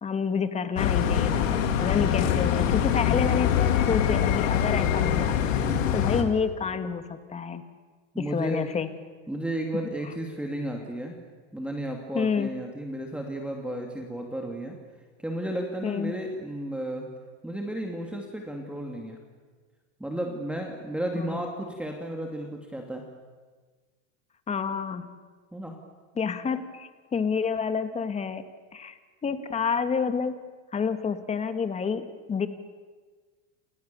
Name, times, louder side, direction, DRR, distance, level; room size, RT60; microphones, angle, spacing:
voice 1, 0.0-5.4 5.9-7.6 8.2-8.9 9.7-9.8 12.1-12.5 15.8-16.1 21.2-21.5 24.5-25.1 26.2-28.4 28.7-28.9 29.2-30.4 30.7-32.5, left 6 dB, 15° left, 10 dB, 1.9 m, -29 dB
sound 1, 0.8-6.2, left 9 dB, 80° left, 3.3 m, -24 dB
voice 2, 8.1-8.7 9.3-11.2 11.5-14.8 15.2-17.0 17.4-19.2 20.0-23.0 25.5-25.7, right 1 dB, 5° right, 1 dB, 2.7 m, -33 dB
29.5 x 28.0 x 7.1 m, 1.4 s
supercardioid pair, 140°, 38 cm